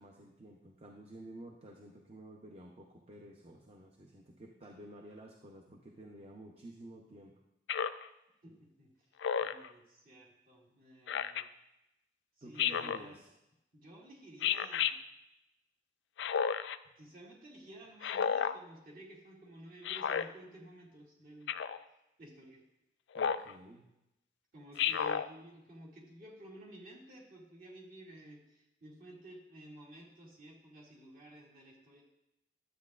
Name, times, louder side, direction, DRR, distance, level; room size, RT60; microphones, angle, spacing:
voice 1, 0.0-7.3 12.4-13.3 23.1-23.9 24.9-25.1, right 1 dB, 35° right, 1 dB, 0.6 m, -52 dB
Speech synthesizer, 7.7-8.1 9.2-9.7 11.1-11.4 12.6-13.0 14.4-14.9 16.2-16.8 18.0-18.6 19.8-20.3 21.5-21.8 23.1-23.5 24.8-25.3, left 7 dB, 85° left, 0.3 m, -32 dB
voice 2, 8.4-9.1 9.4-11.4 12.4-13.2 13.7-14.9 17.0-21.6 22.2-22.6 24.5-32.0, right 1 dB, 50° right, -4 dB, 2.2 m, -53 dB
12.0 x 8.2 x 2.4 m, 0.90 s
head